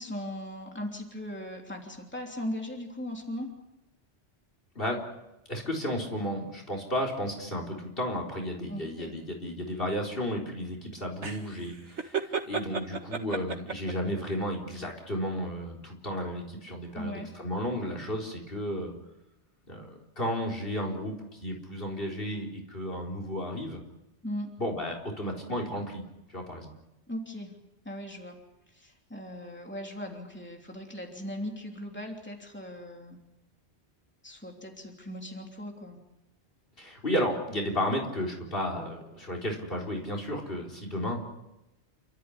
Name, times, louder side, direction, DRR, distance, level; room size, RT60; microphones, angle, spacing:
voice 1, 0.0-3.5 8.7-9.1 16.9-17.3 24.2-24.5 27.1-27.5 27.8-28.4 28.7-33.2 34.2-36.0, equal, 10° left, 1 dB, 3.3 m, -38 dB
voice 2, 5.5-18.9 19.7-23.8 24.6-26.0 26.3-26.7 36.8-41.2, equal, 55° left, 2 dB, 4.4 m, -33 dB
sound 1, 11.2-14.1, right 5 dB, 85° right, 2.2 m, -32 dB
29.0 x 14.0 x 9.9 m, 0.94 s
omnidirectional pair, 1.1 m